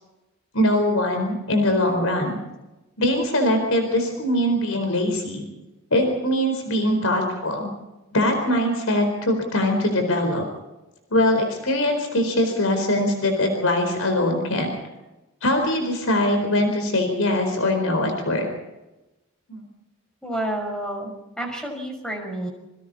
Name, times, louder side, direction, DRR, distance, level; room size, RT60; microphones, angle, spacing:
voice 1, 0.5-2.4 3.0-5.4 5.9-7.7 8.1-10.4 11.1-14.7 15.4-18.5 19.5-19.6, left 1 dB, 75° left, 4 dB, 4.5 m, -22 dB
voice 2, 20.2-22.5, right 1 dB, 5° left, 2 dB, 6.1 m, -30 dB
27.5 x 24.5 x 4.3 m, 1.0 s
head